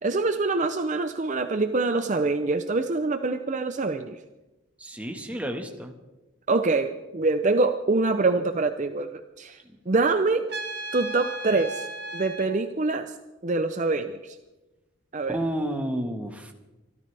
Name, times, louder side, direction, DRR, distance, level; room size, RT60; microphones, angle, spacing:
voice 1, 0.0-4.2 6.5-9.6 9.9-10.4 10.9-13.1 13.4-14.4 15.1-15.4, right 3 dB, 35° right, 8 dB, 0.6 m, -25 dB
voice 2, 4.8-5.9 15.3-16.5, right 1 dB, 5° right, 3 dB, 1.5 m, -31 dB
Trumpet, 10.5-12.5, right 2 dB, 50° right, 1.6 m, -35 dB
25.0 x 13.5 x 3.4 m, 1.1 s
head